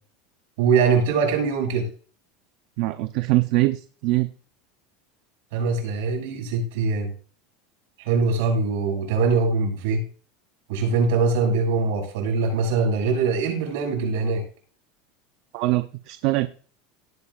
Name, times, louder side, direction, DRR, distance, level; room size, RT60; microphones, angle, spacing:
voice 1, 0.6-1.9 5.5-7.1 8.0-10.0 10.7-14.4, right 4 dB, 75° right, 2 dB, 6.4 m, -22 dB
voice 2, 2.8-4.3 15.5-16.5, right 19 dB, 55° right, 9 dB, 0.7 m, -23 dB
17.5 x 8.6 x 2.5 m, 0.40 s
supercardioid pair, 160°, 0 cm